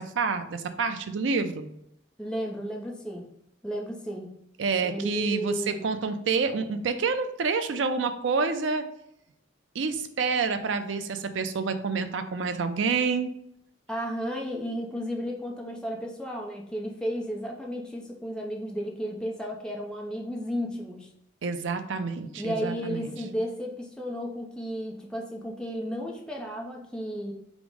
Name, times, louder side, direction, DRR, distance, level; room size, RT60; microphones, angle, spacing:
voice 1, 0.0-1.7 4.6-5.5 5.8-8.8 9.7-13.3 21.4-23.1, right 4 dB, 85° right, 9 dB, 0.5 m, -28 dB
voice 2, 2.2-3.3 3.6-4.3 4.8-5.8 13.9-21.1 22.4-27.3, equal, 5° left, -1 dB, 0.5 m, -33 dB
5.1 x 2.0 x 4.7 m, 0.76 s
head